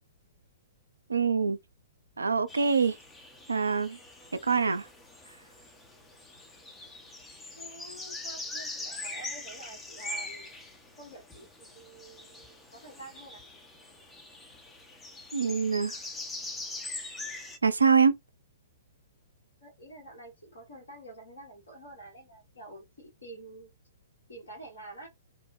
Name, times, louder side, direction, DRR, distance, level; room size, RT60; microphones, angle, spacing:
voice 1, 1.1-1.6 2.2-2.9 3.5-4.0 4.5-4.9 15.3-16.0 17.6-18.1, right 5 dB, 75° right, 0.4 m, -24 dB
sound 1, 2.5-17.6, left 2 dB, 10° left, 0.5 m, -42 dB
voice 2, 7.6-10.5 11.0-13.4 19.6-23.7 24.3-25.1, right 2 dB, 70° left, 1.3 m, -48 dB
2.9 x 2.1 x 2.6 m
figure-of-eight pair, 115°, 0 cm